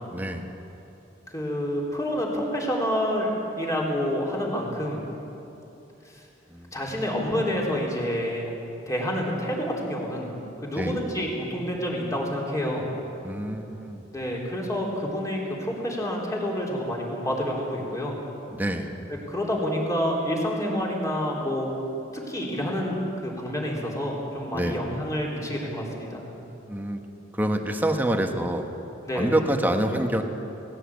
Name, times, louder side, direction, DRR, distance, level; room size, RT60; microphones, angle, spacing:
voice 1, 0.1-0.4 6.5-6.7 10.7-11.0 13.2-14.0 18.5-18.9 24.5-24.8 26.7-27.0 27.3-28.7 29.1-30.2, right 1 dB, 10° right, 4 dB, 1.4 m, -26 dB
voice 2, 1.3-5.0 6.7-8.5 8.9-12.8 14.1-18.1 19.3-21.7 22.1-23.0 23.2-26.2 29.1-29.3, equal, 20° left, -2 dB, 3.8 m, -28 dB
19.0 x 17.0 x 8.5 m, 2.9 s
head